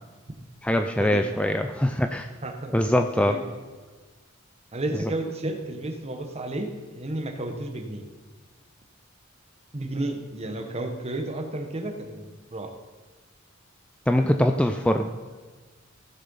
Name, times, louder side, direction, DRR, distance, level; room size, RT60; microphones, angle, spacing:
voice 1, 0.6-2.3 2.7-3.3 14.1-15.1, left 1 dB, 5° left, 5 dB, 0.4 m, -22 dB
voice 2, 2.4-2.7 3.2-3.4 4.7-8.0 9.7-12.7, right 2 dB, 30° right, 4 dB, 1.2 m, -32 dB
15.5 x 7.5 x 5.5 m, 1.4 s
head